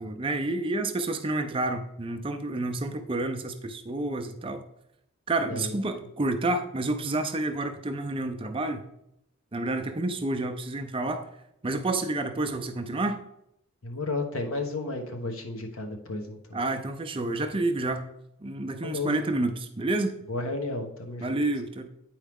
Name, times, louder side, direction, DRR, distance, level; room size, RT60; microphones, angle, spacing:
voice 1, 0.0-4.6 5.3-8.8 9.5-11.2 11.6-13.2 16.5-18.1 18.4-20.1 21.2-21.9, right 2 dB, 25° right, 7 dB, 0.5 m, -29 dB
voice 2, 13.8-16.6 18.8-19.1 20.3-21.4, left 2 dB, 75° left, 4 dB, 1.2 m, -33 dB
9.0 x 4.7 x 3.6 m, 0.78 s
head